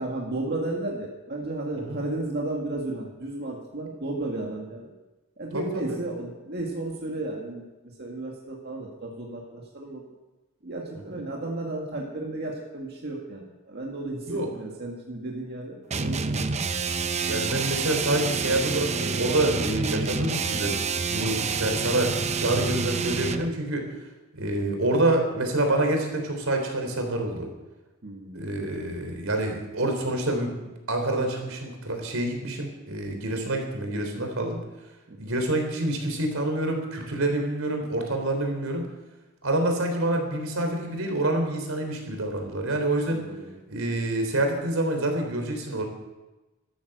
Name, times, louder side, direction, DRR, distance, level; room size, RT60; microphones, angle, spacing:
voice 1, 0.0-4.9 5.4-7.6 8.0-10.0 10.6-16.4 28.0-28.6 35.1-35.3 43.1-43.5, right 2 dB, 50° right, -1 dB, 2.1 m, -33 dB
voice 2, 5.5-6.0 10.9-11.2 14.3-14.5 17.2-23.9 24.3-27.5 28.3-30.5 30.9-34.6 35.2-38.9 39.4-43.2 43.7-45.9, right 1 dB, 85° right, 4 dB, 3.5 m, -27 dB
sound 1, 15.9-23.5, right 4 dB, 35° right, 0.7 m, -28 dB
13.0 x 13.0 x 6.7 m, 1.1 s
head